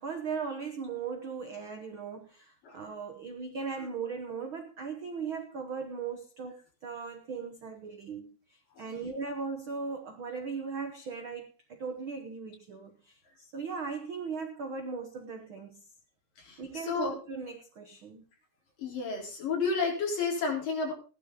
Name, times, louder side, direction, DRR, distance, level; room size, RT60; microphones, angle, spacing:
voice 1, 0.0-15.8 16.6-18.3, right 5 dB, 70° right, 5 dB, 1.2 m, -38 dB
voice 2, 16.4-17.1 18.8-20.9, left 4 dB, 60° left, 0 dB, 5.7 m, -31 dB
16.5 x 11.5 x 3.9 m, 0.34 s
omnidirectional pair, 4.3 m